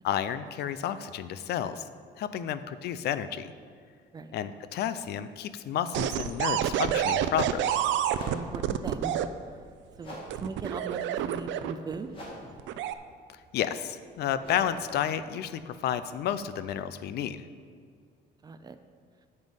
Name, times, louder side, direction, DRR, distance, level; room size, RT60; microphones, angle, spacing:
voice 1, 0.0-1.8 2.2-3.5 4.3-7.7 13.5-17.4, left 9 dB, 60° left, 13 dB, 0.5 m, -31 dB
sound 1, 5.9-9.3 10.3-11.9 12.6-12.9, right 10 dB, 75° right, 0.5 m, -28 dB
sound 2, 8.1-16.9, equal, 25° left, 2.2 m, -48 dB
voice 2, 8.2-9.2 10.0-12.1 18.4-18.8, right 4 dB, 20° right, 10 dB, 0.4 m, -39 dB
9.2 x 5.5 x 8.0 m, 2.2 s
cardioid pair, 170°, 19 cm